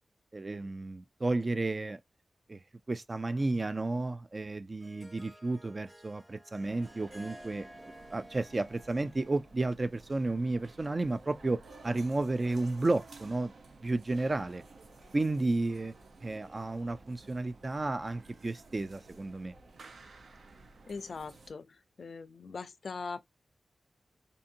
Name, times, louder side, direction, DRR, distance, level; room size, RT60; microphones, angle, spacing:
voice 1, 0.3-2.0 2.5-2.6 2.9-7.7 8.1-13.5 13.8-14.6 15.1-15.9 16.2-19.5, right 2 dB, 35° right, 0.3 m, -32 dB
Harp, 4.6-9.7, right 1 dB, 15° right, 0.9 m, -53 dB
sound 1, 6.6-21.5, right 3 dB, 70° right, 0.6 m, -54 dB
voice 2, 20.9-23.3, left 4 dB, 70° left, 0.4 m, -41 dB
2.7 x 2.5 x 2.6 m
wide cardioid pair, 100°, 0 cm